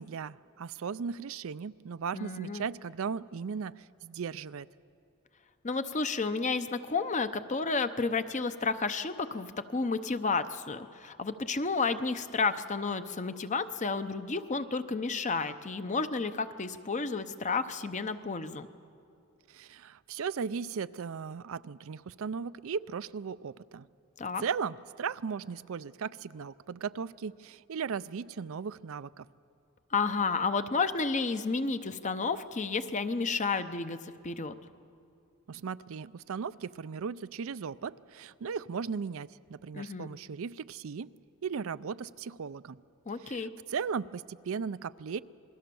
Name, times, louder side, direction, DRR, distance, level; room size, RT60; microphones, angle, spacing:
voice 1, 0.0-4.7 19.5-23.9 24.4-29.3 35.5-41.1 41.4-42.8 43.2-45.2, right 6 dB, 65° right, 15 dB, 0.4 m, -37 dB
voice 2, 2.1-2.7 5.6-18.7 24.2-24.4 29.9-34.5 39.7-40.1 43.1-43.5, left 4 dB, 35° left, 10 dB, 0.8 m, -31 dB
27.5 x 21.0 x 7.0 m, 2.6 s
head